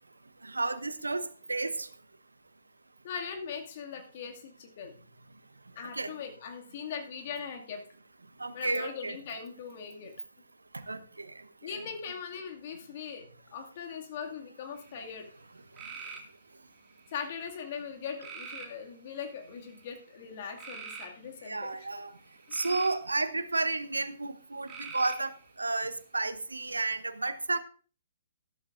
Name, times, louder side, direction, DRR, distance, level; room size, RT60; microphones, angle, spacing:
voice 1, 0.5-1.9 6.0-6.1 8.4-9.2 10.9-11.0 21.5-22.1 22.5-25.3 25.6-27.6, right 3 dB, 80° right, 13 dB, 0.9 m, -31 dB
voice 2, 3.0-4.9 5.8-7.8 8.5-10.1 11.6-13.3 13.5-15.3 17.1-21.9 22.5-22.6, left 6 dB, 45° left, 3 dB, 2.1 m, -40 dB
sound 1, 14.8-15.2 15.8-16.3 17.0-17.5 18.2-18.8 19.5-19.8 20.6-21.1 22.2-23.0 24.7-25.4, right 5 dB, 20° right, 2.1 m, -43 dB
13.5 x 12.0 x 2.5 m, 0.39 s
figure-of-eight pair, 125°, 0 cm